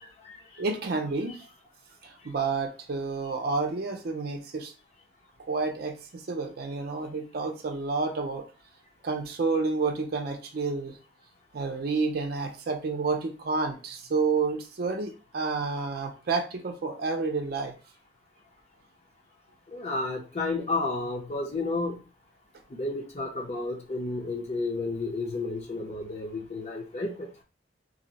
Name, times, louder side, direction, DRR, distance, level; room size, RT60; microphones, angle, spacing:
voice 1, 0.0-0.4 19.7-22.0 22.8-27.1, left 3 dB, 40° left, 0 dB, 0.6 m, -31 dB
voice 2, 0.6-1.4 2.0-4.7 5.5-8.5 9.0-11.0 11.5-17.7, right 4 dB, 55° right, 3 dB, 0.5 m, -30 dB
2.6 x 2.0 x 3.9 m, 0.33 s
head